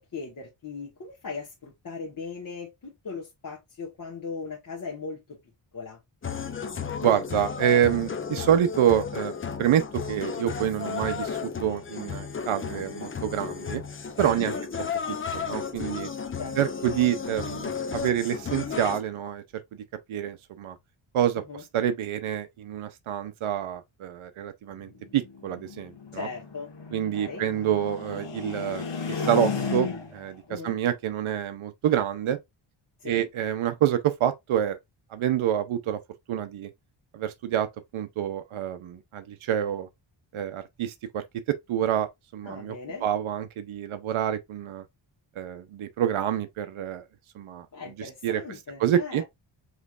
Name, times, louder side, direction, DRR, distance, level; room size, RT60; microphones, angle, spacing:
voice 1, 0.0-5.2 5.7-6.0 14.3-14.7 15.0-15.2 16.3-16.5 21.3-21.6 26.1-26.7 27.1-27.5 30.5-30.8 33.0-33.3 42.4-43.0 47.7-49.2, left 4 dB, 45° left, 1.3 m, -38 dB
sound 1, 6.2-19.0, left 6 dB, 25° left, 0.5 m, -33 dB
voice 2, 7.0-9.3 9.6-13.8 14.2-14.5 15.1-16.1 16.6-19.4 20.1-20.8 21.1-26.3 26.9-32.4 33.0-34.8 35.1-36.0 36.3-36.7 37.1-37.7 37.9-39.9 40.3-44.8 45.4-47.1 47.3-48.4 48.8-49.2, right 10 dB, 80° right, 0.7 m, -27 dB
sound 2, 24.8-30.3, left 5 dB, 60° left, 1.5 m, -34 dB
5.2 x 3.2 x 2.4 m
wide cardioid pair, 170°, 48 cm